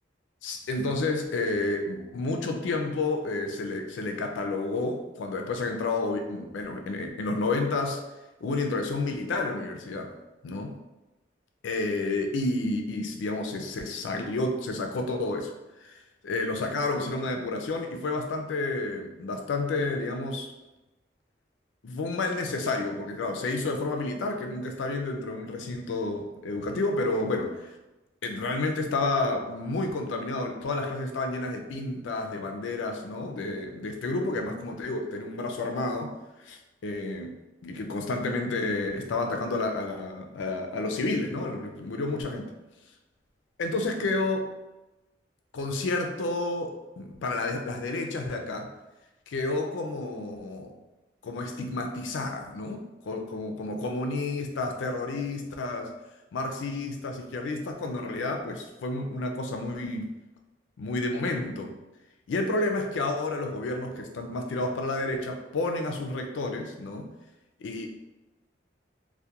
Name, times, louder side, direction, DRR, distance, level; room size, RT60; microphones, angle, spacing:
voice 1, 0.4-8.0 8.4-10.1 10.4-10.7 11.6-15.5 15.8-20.5 21.8-27.7 28.2-37.3 37.6-42.5 43.6-44.5 45.5-48.7 49.3-50.7 51.2-55.9 56.3-60.1 60.8-61.7 62.3-67.1 67.6-68.0, left 2 dB, 90° left, 4 dB, 0.4 m, -30 dB
2.3 x 2.1 x 2.8 m, 1.0 s
head